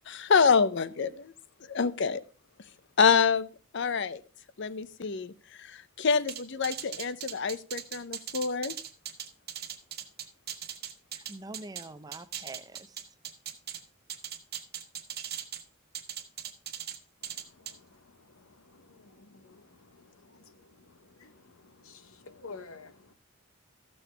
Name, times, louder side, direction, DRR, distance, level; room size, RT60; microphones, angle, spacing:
voice 1, 0.1-1.3 1.6-2.2 3.0-3.5 3.7-4.2 4.6-5.3 5.6-8.7, left 5 dB, 55° left, 0.6 m, -26 dB
sound 1, 6.3-11.8 12.1-13.8 14.1-15.6 15.9-17.0 17.2-17.7, right 10 dB, 45° right, 1.1 m, -39 dB
voice 2, 11.1-13.1, right 2 dB, 20° right, 0.5 m, -45 dB
voice 3, 17.2-23.1, left 4 dB, 75° left, 1.0 m, -52 dB
14.0 x 7.0 x 3.3 m
head